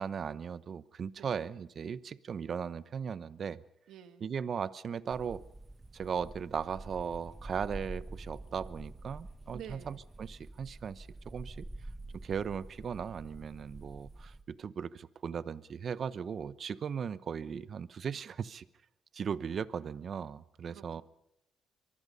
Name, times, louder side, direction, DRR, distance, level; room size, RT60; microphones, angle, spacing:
voice 1, 0.0-3.6 4.2-5.4 5.9-11.7 12.2-18.6 19.1-21.0, right 7 dB, 50° right, 16 dB, 0.9 m, -37 dB
voice 2, 3.9-4.3 9.5-10.0 20.7-21.0, right 9 dB, 80° right, 8 dB, 2.1 m, -49 dB
sound 1, 5.1-14.4, right 2 dB, 15° right, 1.5 m, -47 dB
24.0 x 23.5 x 5.5 m, 0.79 s
cardioid pair, 90°, 0 cm